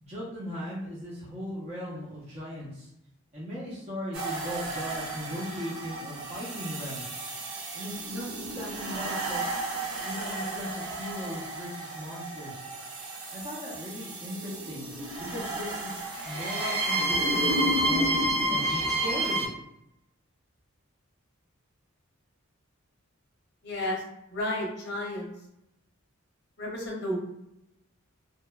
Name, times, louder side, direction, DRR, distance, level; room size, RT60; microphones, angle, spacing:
voice 1, 0.0-2.9 3.3-7.0 7.7-9.4 10.0-12.6 13.3-14.9 15.2-19.5, equal, 30° right, -8 dB, 0.6 m, -38 dB
sound 1, 4.1-19.5, right 1 dB, 85° right, 0.6 m, -31 dB
voice 2, 23.6-24.0 24.3-25.3 26.6-27.2, left 1 dB, 50° left, -2 dB, 0.6 m, -32 dB
2.8 x 2.1 x 2.2 m, 0.82 s
head